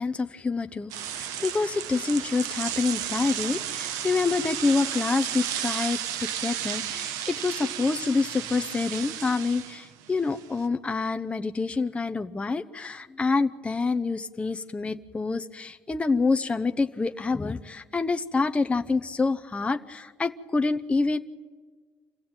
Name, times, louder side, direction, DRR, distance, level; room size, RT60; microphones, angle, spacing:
voice 1, 0.0-21.2, left 4 dB, 20° left, 7 dB, 0.8 m, -27 dB
sound 1, 0.9-10.7, right 10 dB, 80° right, 1.1 m, -33 dB
26.5 x 15.5 x 8.9 m, 1.5 s
supercardioid pair, 80°, 6 cm